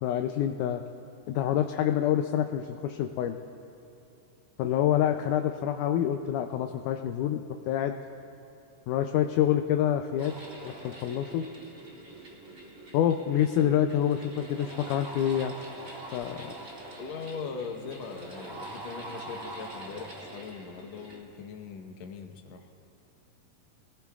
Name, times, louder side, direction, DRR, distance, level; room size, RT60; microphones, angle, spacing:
voice 1, 0.0-0.8 1.3-3.4 4.6-8.0 8.9-10.3 10.6-11.5 12.9-15.5 16.1-16.6, left 10 dB, 80° left, 5 dB, 1.9 m, -27 dB
sound 1, 10.2-21.2, right 1 dB, 25° right, 2.6 m, -44 dB
voice 2, 17.0-22.7, left 5 dB, 65° left, 4 dB, 2.0 m, -40 dB
26.0 x 19.0 x 2.4 m, 2.7 s
omnidirectional pair, 4.0 m